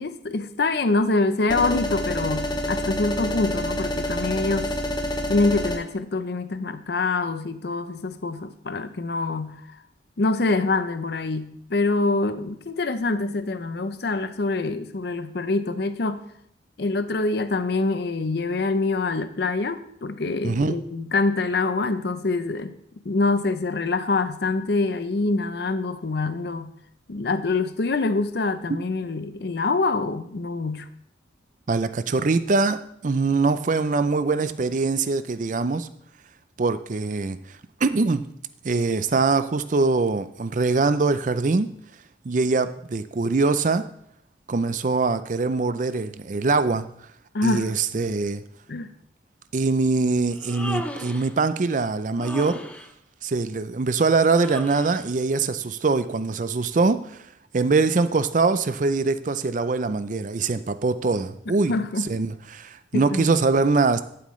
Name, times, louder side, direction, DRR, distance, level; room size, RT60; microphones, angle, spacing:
voice 1, 0.0-4.7 5.3-9.6 10.2-16.2 16.8-22.7 23.1-26.7 27.1-30.9 47.3-47.7 48.7-48.9 61.7-62.1 62.9-63.4, left 3 dB, 55° left, 11 dB, 0.6 m, -25 dB
sound 1, 1.5-5.8, left 1 dB, 25° left, 1.0 m, -27 dB
voice 2, 20.4-20.8 31.7-35.9 36.6-37.4 37.8-38.2 38.6-41.7 42.2-43.8 44.5-46.9 47.4-48.4 49.5-52.6 53.2-57.0 57.5-61.7 62.0-64.0, right 3 dB, 40° right, 12 dB, 0.4 m, -23 dB
Human voice, 50.3-51.3 52.2-52.9 54.3-55.0, left 1 dB, 5° left, 0.6 m, -35 dB
12.0 x 7.8 x 3.2 m, 0.72 s
head